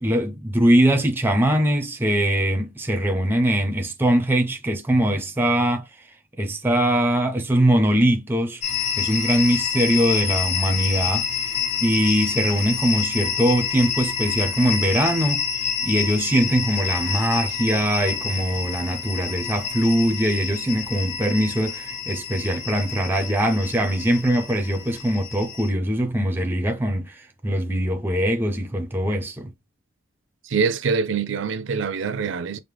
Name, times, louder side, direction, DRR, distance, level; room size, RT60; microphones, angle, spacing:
voice 1, 0.0-5.8 6.4-8.6 9.0-11.3 11.8-15.4 15.8-27.1 27.4-29.5, right 1 dB, 10° right, 0.5 m, -22 dB
sound 1, 8.6-25.7, left 6 dB, 35° left, 0.9 m, -28 dB
voice 2, 30.4-32.6, right 5 dB, 65° right, 0.5 m, -24 dB
4.9 x 2.0 x 3.4 m
head